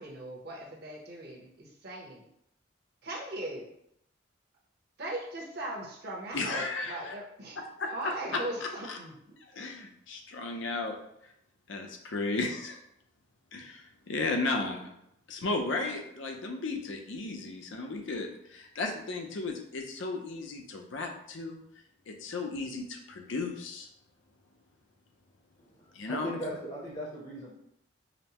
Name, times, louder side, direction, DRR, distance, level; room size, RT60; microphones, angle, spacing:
voice 1, 0.0-2.3 3.0-3.6 5.0-7.6 7.9-9.3, right 1 dB, 55° right, -2 dB, 0.9 m, -39 dB
voice 2, 6.3-7.1 7.6-8.1 8.6-9.0 9.5-11.0 11.7-12.8 13.5-14.9 15.3-21.6 22.1-23.9 25.9-26.3, left 3 dB, 70° left, 3 dB, 0.6 m, -35 dB
voice 3, 25.6-27.5, equal, 30° left, -4 dB, 0.7 m, -39 dB
5.1 x 2.1 x 2.9 m, 0.76 s
head